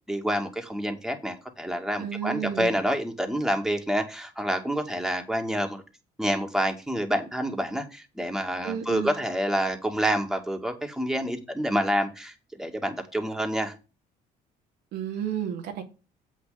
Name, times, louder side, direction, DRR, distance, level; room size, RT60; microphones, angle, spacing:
voice 1, 0.1-5.8 6.2-13.7, equal, ahead, 2.3 m, -28 dB
voice 2, 2.0-2.8 8.6-9.2 14.9-15.8, right 9 dB, 75° right, 2.3 m, -32 dB
7.9 x 6.5 x 5.1 m
cardioid pair, 110°, 17 cm